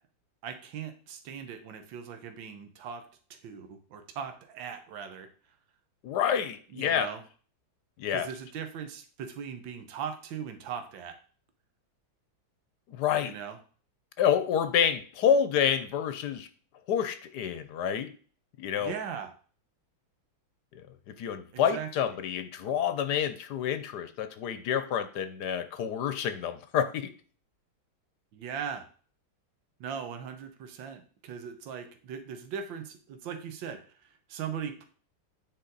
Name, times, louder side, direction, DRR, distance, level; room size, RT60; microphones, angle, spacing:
voice 1, 0.4-3.0 3.4-5.3 6.7-7.2 8.1-11.2 13.2-13.6 18.8-19.3 21.5-22.2 28.3-28.9 29.8-34.8, right 7 dB, 75° right, 7 dB, 1.7 m, -39 dB
voice 2, 6.0-7.1 8.0-8.3 12.9-13.4 14.2-16.5 16.9-18.1 18.6-18.9 20.7-27.1, left 8 dB, 65° left, 11 dB, 1.2 m, -28 dB
9.0 x 4.5 x 3.9 m, 0.41 s
omnidirectional pair, 2.1 m